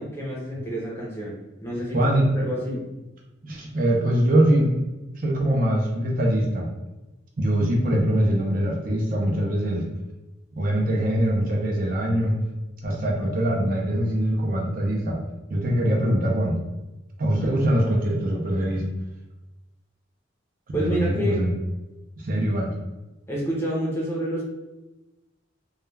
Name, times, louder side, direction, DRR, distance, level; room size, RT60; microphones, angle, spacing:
voice 1, 0.0-2.0 2.3-2.9 17.5-17.6 20.7-21.4 23.3-24.4, equal, 15° left, -4 dB, 0.6 m, -29 dB
voice 2, 1.9-2.3 3.4-4.7 5.2-6.7 7.4-9.8 10.5-12.4 12.8-15.2 15.5-16.6 17.2-18.8 20.7-21.5 22.2-22.7, right 1 dB, 45° right, -2 dB, 0.5 m, -23 dB
2.3 x 2.2 x 3.1 m, 1.1 s
head